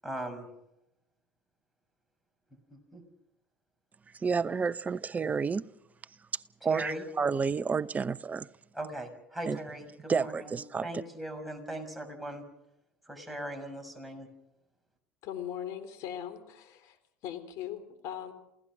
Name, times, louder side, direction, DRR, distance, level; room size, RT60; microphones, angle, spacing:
voice 1, 0.0-0.5 2.7-3.0 6.6-7.0 8.7-10.5 10.8-12.4 13.1-14.3, right 1 dB, ahead, 6.3 m, -39 dB
voice 2, 4.2-5.6 6.6-8.5 9.5-9.6 10.1-10.9, right 5 dB, 25° right, 0.8 m, -30 dB
voice 3, 15.2-17.0 17.2-18.3, left 10 dB, 65° left, 3.9 m, -39 dB
28.5 x 17.0 x 6.2 m
supercardioid pair, 95°, 6 cm